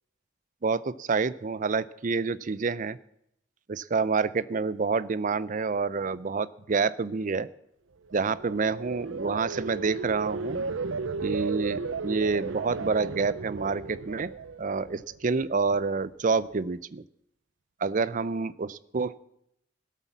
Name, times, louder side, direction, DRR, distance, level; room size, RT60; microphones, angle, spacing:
voice 1, 0.6-3.0 3.7-7.5 8.1-10.6 11.2-14.3 14.6-17.0 17.8-19.2, right 4 dB, 40° right, 18 dB, 0.5 m, -28 dB
sound 1, 8.1-15.3 15.7-16.0, right 4 dB, 80° right, 0.7 m, -35 dB
17.5 x 8.3 x 7.2 m, 0.76 s
head